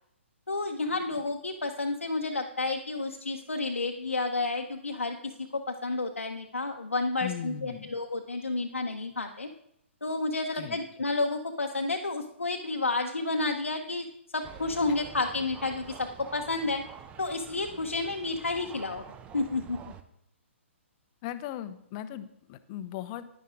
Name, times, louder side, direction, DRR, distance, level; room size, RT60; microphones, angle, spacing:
voice 1, 0.5-9.5 10.0-14.1 14.3-16.8 17.2-19.0 19.3-19.8, left 3 dB, 80° left, 4 dB, 0.9 m, -31 dB
voice 2, 7.2-8.0 10.5-10.8 21.2-23.3, left 11 dB, 30° left, 13 dB, 0.7 m, -38 dB
sound 1, 14.4-20.0, right 7 dB, 15° right, 0.7 m, -47 dB
11.0 x 10.5 x 3.8 m, 0.74 s
figure-of-eight pair, 125°, 7 cm